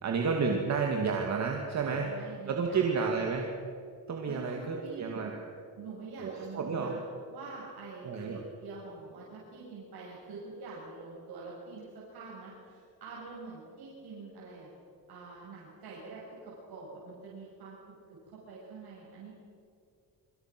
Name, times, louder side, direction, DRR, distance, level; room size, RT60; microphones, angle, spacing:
voice 1, 0.0-3.5 4.1-5.4 6.2-6.9 8.0-8.4, right 5 dB, 45° right, 1 dB, 2.3 m, -31 dB
voice 2, 1.9-3.3 4.3-5.3 5.8-7.0 7.3-14.7 15.1-19.3, right 4 dB, 85° right, -5 dB, 7.0 m, -46 dB
28.0 x 24.0 x 6.1 m, 2.5 s
cardioid pair, 170°, 37 cm